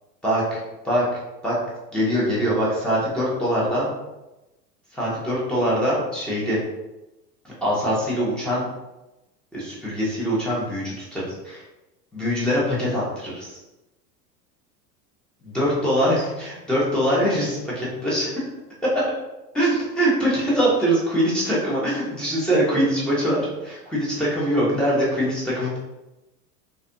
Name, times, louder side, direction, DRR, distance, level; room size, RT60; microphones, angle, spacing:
voice 1, 0.2-0.6 0.8-1.0 1.4-1.6 1.9-3.9 4.9-6.6 7.6-8.7 9.5-11.6 12.1-13.5 15.4-18.4 18.8-19.1 19.5-25.8, equal, ahead, -8 dB, 0.3 m, -23 dB
2.4 x 2.1 x 2.4 m, 1.0 s
hypercardioid pair, 85°, 49 cm